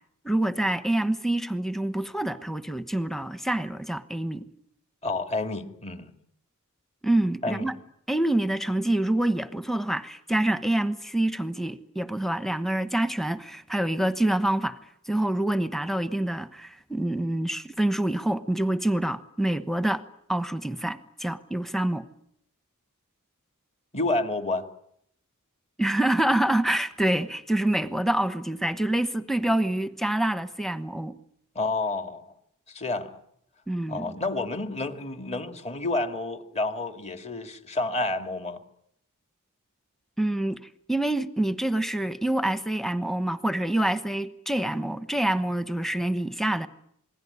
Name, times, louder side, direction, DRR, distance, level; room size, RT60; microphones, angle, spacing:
voice 1, 0.2-4.5 7.0-7.7 8.1-14.8 15.1-20.0 20.3-22.0 25.8-31.1 33.7-34.2 40.2-40.6 40.9-46.7, right 1 dB, ahead, 1.1 m, -26 dB
voice 2, 5.0-6.1 7.4-7.7 23.9-24.7 31.6-32.3 32.7-33.2 33.9-38.6, left 2 dB, 30° left, 2.2 m, -29 dB
27.5 x 20.5 x 9.8 m
head